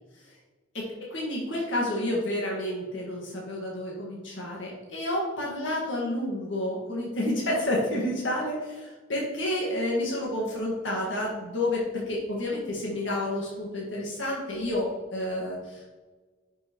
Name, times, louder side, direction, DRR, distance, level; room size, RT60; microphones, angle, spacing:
voice 1, 0.7-15.9, left 1 dB, 80° left, -3 dB, 1.7 m, -30 dB
10.5 x 5.7 x 3.0 m, 1.3 s
head